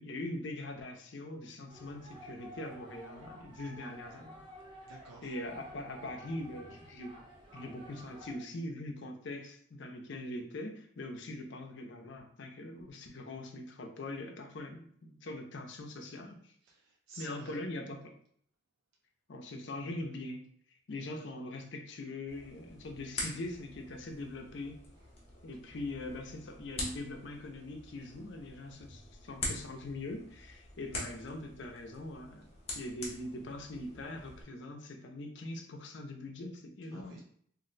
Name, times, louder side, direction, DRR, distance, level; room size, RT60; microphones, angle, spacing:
voice 1, 0.0-4.4 5.2-7.2 7.5-16.5 17.2-18.1 19.3-20.4 20.9-24.8 25.4-32.5 32.7-37.2, left 2 dB, 60° left, 4 dB, 0.5 m, -42 dB
sound 1, 1.7-8.4, right 1 dB, 25° right, 0.6 m, -52 dB
voice 2, 4.9-5.3 16.7-17.6 36.9-37.2, right 3 dB, 70° right, -1 dB, 0.4 m, -51 dB
sound 2, 22.3-34.4, left 2 dB, 30° left, 0.8 m, -45 dB
2.5 x 2.1 x 3.8 m, 0.62 s
head